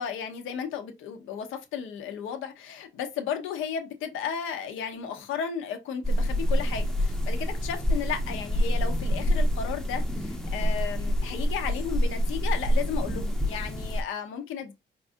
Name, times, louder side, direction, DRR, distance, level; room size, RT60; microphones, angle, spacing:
voice 1, 0.0-14.7, left 7 dB, 85° left, 0.9 m, -34 dB
sound 1, 6.0-14.0, equal, 5° left, 0.6 m, -27 dB
4.7 x 2.5 x 2.5 m
cardioid pair, 90°, 20 cm